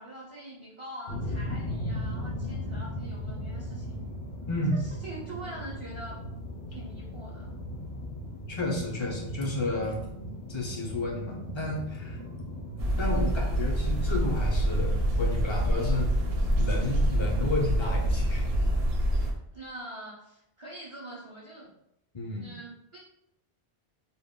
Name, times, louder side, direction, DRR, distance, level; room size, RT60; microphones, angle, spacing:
voice 1, 0.0-4.0 4.7-6.2 6.7-7.5 19.5-21.7 22.4-23.0, right 1 dB, 40° right, -5 dB, 0.5 m, -44 dB
sound 1, 1.1-18.7, left 1 dB, 65° left, 0.8 m, -38 dB
voice 2, 4.5-4.8 8.5-10.0 10.5-12.2 13.0-16.1 16.6-18.5 22.1-22.5, left 2 dB, 40° left, -1 dB, 0.4 m, -31 dB
sound 2, 12.8-19.3, right 1 dB, 75° right, 0.8 m, -26 dB
2.1 x 2.1 x 3.5 m, 0.79 s
omnidirectional pair, 1.0 m